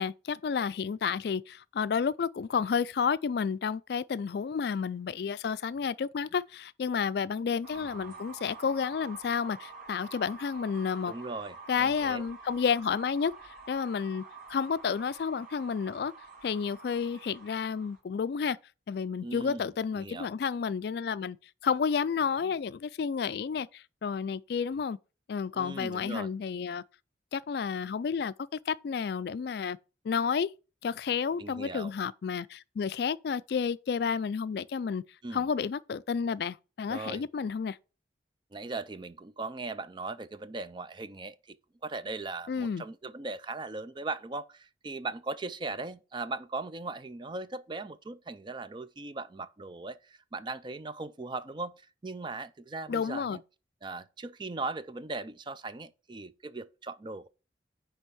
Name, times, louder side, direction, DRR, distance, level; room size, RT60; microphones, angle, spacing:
voice 1, 0.0-11.1 11.7-13.3 13.7-14.2 14.5-16.1 16.4-18.6 18.9-21.4 21.6-25.0 25.3-26.8 27.3-28.3 28.7-29.8 30.0-30.5 30.8-35.0 35.3-37.8 42.5-42.8 52.9-53.4, left 6 dB, 60° left, 0.3 m, -31 dB
sound 1, 7.6-18.0, right 4 dB, 45° right, 2.1 m, -48 dB
voice 2, 11.1-12.2 19.2-19.7 19.9-20.3 25.5-26.3 31.4-31.9 35.2-35.5 36.9-37.3 38.5-41.6 41.8-53.4 53.8-57.3, right 3 dB, 25° right, 0.4 m, -39 dB
9.9 x 3.4 x 6.2 m
head